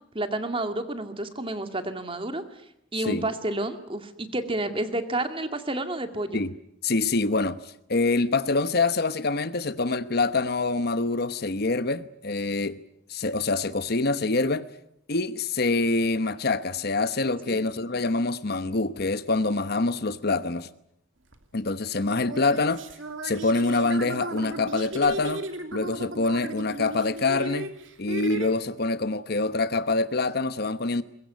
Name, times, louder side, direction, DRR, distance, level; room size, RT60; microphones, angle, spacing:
voice 1, 0.1-2.4 2.9-6.4 17.5-17.6, right 2 dB, 25° right, 2.2 m, -30 dB
voice 2, 6.8-7.6 7.9-12.8 13.1-14.7 15.1-20.7 21.5-22.8 23.2-25.5 25.7-27.7 28.0-31.0, left 3 dB, 55° left, 1.0 m, -25 dB
sound 1, 21.3-21.4 22.1-28.5, right 1 dB, 80° right, 2.8 m, -35 dB
22.5 x 22.0 x 9.5 m
head